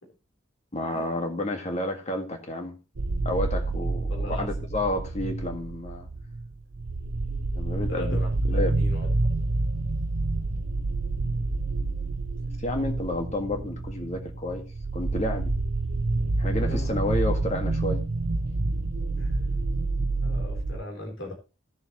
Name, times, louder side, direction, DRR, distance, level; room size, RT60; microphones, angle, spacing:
voice 1, 0.7-2.7 3.2-6.1 7.5-8.2 8.4-8.8 12.6-14.6 14.9-15.5 16.4-18.0, left 1 dB, 35° left, 1.8 m, -30 dB
sound 1, 3.0-20.8, right 2 dB, 85° right, 0.8 m, -28 dB
voice 2, 4.1-4.5 7.9-9.1 16.6-17.0 19.2-19.4 20.2-21.3, left 1 dB, 75° left, 3.7 m, -39 dB
16.5 x 7.2 x 3.0 m
head